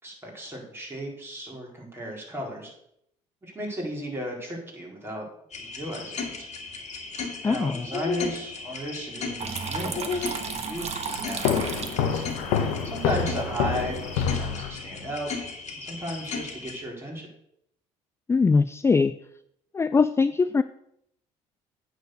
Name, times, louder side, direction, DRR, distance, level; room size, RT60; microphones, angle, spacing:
voice 1, 0.0-2.7 3.4-5.3 5.6-6.5 7.4-15.4 15.7-17.3, equal, 15° right, -2 dB, 4.3 m, -35 dB
Clock in the night, 5.5-16.8, left 4 dB, 50° left, 2.1 m, -36 dB
voice 2, 7.4-7.9 18.3-19.1 19.7-20.6, left 4 dB, 20° left, 13 dB, 0.4 m, -21 dB
Water tap faucet / Trickle dribble, 9.4-14.4, right 5 dB, 45° right, 1.4 m, -36 dB
sound 1, 11.4-15.1, left 7 dB, 85° left, 1.1 m, -27 dB
9.1 x 4.6 x 6.5 m, 0.73 s
supercardioid pair, 75°, 15 cm